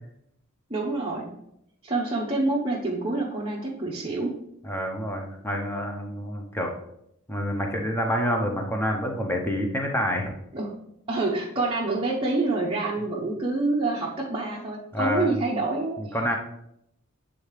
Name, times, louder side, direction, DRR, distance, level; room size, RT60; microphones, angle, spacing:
voice 1, 0.7-1.3 1.8-4.4 10.5-10.7 11.1-16.2, right 2 dB, 25° right, -5 dB, 0.7 m, -27 dB
voice 2, 4.6-6.7 7.3-10.3 14.9-15.3 16.0-16.4, equal, 10° left, 2 dB, 0.7 m, -27 dB
8.2 x 3.6 x 3.3 m, 0.77 s
head